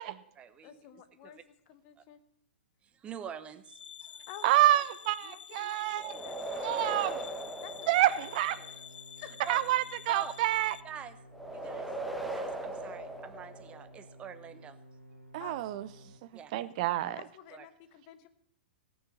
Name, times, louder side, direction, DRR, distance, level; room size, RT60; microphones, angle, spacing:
voice 1, 0.0-1.4 2.0-2.1 2.8-4.2 6.6-6.7 9.4-9.6 10.1-10.3 10.8-11.2 11.5-11.9 12.2-14.8 16.0-16.6 17.5-17.6, right 8 dB, 20° right, 1.0 m, -46 dB
voice 2, 0.6-2.2 4.3-4.6 5.2-6.7 7.6-8.7 9.2-9.3 12.5-12.6 15.4-15.6 17.0-18.3, left 10 dB, 35° left, 1.2 m, -51 dB
sound 1, 3.7-10.8, left 8 dB, 65° left, 0.5 m, -49 dB
voice 3, 4.4-6.2 6.5-7.2 7.9-8.6 9.5-10.8 15.3-15.9 16.2-17.2, right 14 dB, 40° right, 0.8 m, -28 dB
sound 2, 6.0-8.7 11.3-14.0, right 1 dB, ahead, 1.3 m, -39 dB
sound 3, 6.8-16.2, equal, 85° right, 2.1 m, -54 dB
17.5 x 6.5 x 7.2 m
figure-of-eight pair, 110°, 6 cm